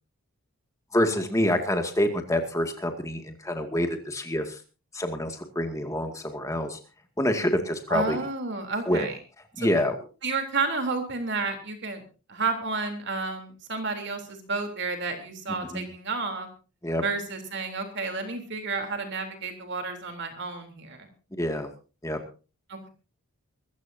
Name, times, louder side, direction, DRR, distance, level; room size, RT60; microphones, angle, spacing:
voice 1, 0.9-4.6 4.9-6.8 7.2-8.2 8.9-9.1 9.6-9.9 15.7-15.9 16.8-17.0 21.4-21.7 22.0-22.2, left 1 dB, 15° left, 5 dB, 2.2 m, -26 dB
voice 2, 7.9-9.2 9.6-9.7 10.2-12.0 12.3-16.5 17.0-21.1 22.7-22.9, right 3 dB, 50° right, 5 dB, 3.5 m, -31 dB
24.0 x 15.0 x 2.8 m, 0.34 s
head